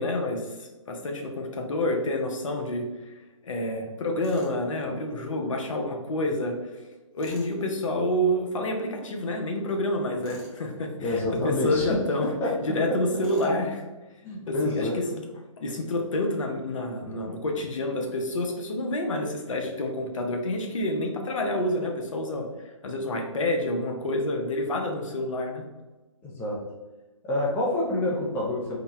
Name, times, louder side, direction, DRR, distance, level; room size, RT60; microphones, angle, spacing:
voice 1, 0.0-3.1 3.4-6.6 7.1-12.3 12.6-13.8 14.5-15.0 15.6-25.6, left 1 dB, 65° left, 3 dB, 0.9 m, -28 dB
Tools, 4.2-4.6 7.2-7.6 10.2-10.6 13.2-13.6, left 1 dB, 25° left, 1.1 m, -45 dB
voice 2, 11.0-12.5 14.2-15.0 26.2-26.6 27.2-28.8, left 1 dB, 10° left, -4 dB, 0.6 m, -27 dB
3.9 x 2.3 x 4.1 m, 1.1 s
hypercardioid pair, 140°, 18 cm